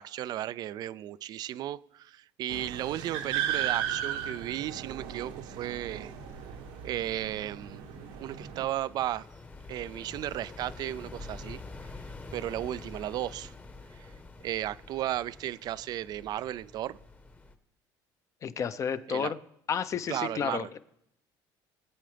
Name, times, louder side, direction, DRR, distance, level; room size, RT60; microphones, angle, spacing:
voice 1, 0.0-6.1 6.8-7.8 8.2-9.3 9.7-11.6 12.3-13.5 13.9-14.1 14.4-17.0 19.1-19.3 20.1-20.7, right 13 dB, 50° right, 0.3 m, -34 dB
sound 1, 2.5-8.7, right 9 dB, 80° right, 1.1 m, -36 dB
sound 2, 6.2-17.5, left 3 dB, 20° left, 1.1 m, -47 dB
voice 2, 18.4-19.4 19.7-20.8, left 7 dB, 35° left, 0.7 m, -31 dB
23.0 x 8.6 x 3.4 m
cardioid pair, 120°, 9 cm